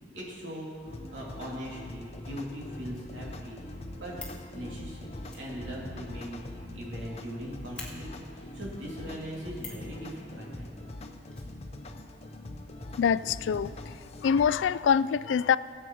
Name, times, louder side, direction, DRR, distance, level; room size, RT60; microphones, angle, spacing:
voice 1, 0.1-3.6 3.9-4.1 4.5-6.4 6.7-10.7, equal, 85° right, -4 dB, 2.9 m, -40 dB
sound 1, 0.9-14.6, left 1 dB, 35° left, 0.7 m, -43 dB
Fire, 4.1-4.5 5.2-7.0 7.3-7.4 7.7-7.9 9.5-9.9 11.3-12.2 12.5-12.6 12.8-12.9, left 3 dB, 5° left, 1.7 m, -45 dB
voice 2, 13.0-13.9 14.2-15.6, left 7 dB, 85° left, 18 dB, 0.3 m, -25 dB
17.5 x 7.7 x 4.6 m, 2.1 s
head